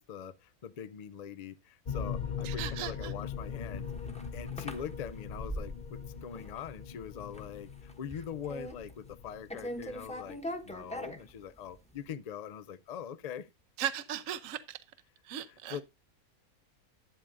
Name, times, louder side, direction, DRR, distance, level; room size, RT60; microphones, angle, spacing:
voice 1, 0.0-10.4 10.6-13.5 15.5-15.8, left 8 dB, 65° left, 0.4 m, -43 dB
sound 1, 1.9-10.2, left 6 dB, 45° left, 0.9 m, -40 dB
voice 2, 2.4-3.1 13.8-14.8 15.2-15.8, right 11 dB, 70° right, 1.1 m, -37 dB
sound 2, 3.6-6.1 6.3-6.9 7.2-7.5 7.8-9.2 9.5-11.8, equal, 5° left, 1.0 m, -41 dB
11.5 x 8.7 x 2.6 m
omnidirectional pair, 1.5 m